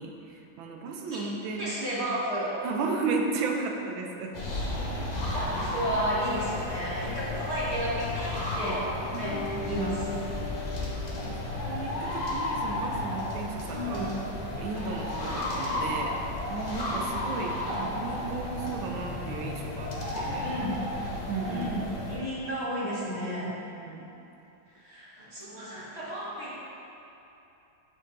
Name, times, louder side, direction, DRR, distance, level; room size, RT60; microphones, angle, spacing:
voice 1, 0.0-1.8 2.6-4.3 4.8-5.7 9.1-9.4 11.2-14.1 14.5-20.5 21.3-21.8 23.4-24.1, right 4 dB, 80° right, 1 dB, 1.4 m, -35 dB
voice 2, 1.6-2.5 5.3-8.9 9.2-9.4 9.6-10.1 13.7-14.1 15.7-15.8 17.6-17.8 20.4-20.7 21.4-21.8 22.1-23.5 24.7-26.6, equal, 35° right, -9 dB, 1.7 m, -32 dB
sound 1, 4.3-22.2, left 1 dB, 55° left, 0.4 m, -33 dB
sound 2, 9.1-16.8, left 3 dB, 75° left, 1.3 m, -41 dB
8.2 x 6.3 x 2.6 m, 2.9 s
omnidirectional pair, 2.2 m